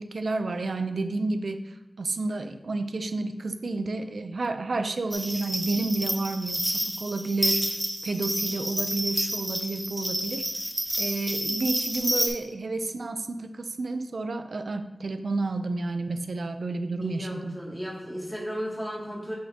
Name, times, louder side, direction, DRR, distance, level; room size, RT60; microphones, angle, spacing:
voice 1, 0.0-1.6 2.0-10.5 11.0-17.6, right 3 dB, 80° right, 8 dB, 0.5 m, -30 dB
sound 1, 5.1-12.3, equal, 10° right, 1.4 m, -29 dB
voice 2, 17.0-19.3, equal, 10° left, -5 dB, 2.4 m, -34 dB
8.6 x 5.5 x 2.9 m, 1.1 s
wide cardioid pair, 60°, 0 cm